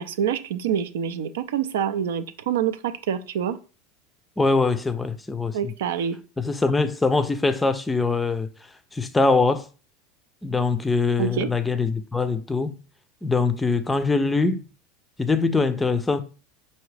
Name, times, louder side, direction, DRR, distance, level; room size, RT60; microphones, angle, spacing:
voice 1, 0.0-3.6 5.5-6.2 11.2-11.5, right 8 dB, 85° right, 0.4 m, -26 dB
voice 2, 4.4-5.7 6.4-8.5 8.9-9.7 10.4-12.8 13.2-14.6 15.2-16.2, left 3 dB, 10° left, 0.4 m, -23 dB
4.8 x 2.6 x 3.2 m
supercardioid pair, 125°, 0 cm